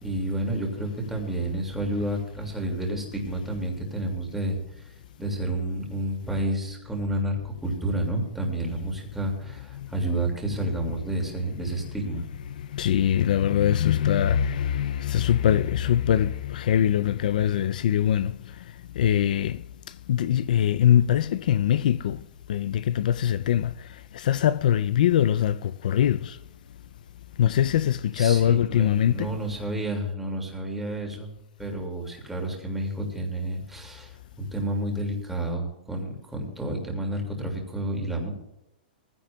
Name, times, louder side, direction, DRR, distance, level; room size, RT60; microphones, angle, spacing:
voice 1, 0.0-4.9 5.2-12.3 28.1-31.3 31.6-38.3, right 1 dB, 5° right, 2.1 m, -30 dB
voice 2, 12.3-18.6 19.0-22.2 22.5-26.4 27.4-29.3, left 10 dB, 60° left, 0.4 m, -23 dB
19.5 x 15.0 x 2.3 m
hypercardioid pair, 170°, 5 cm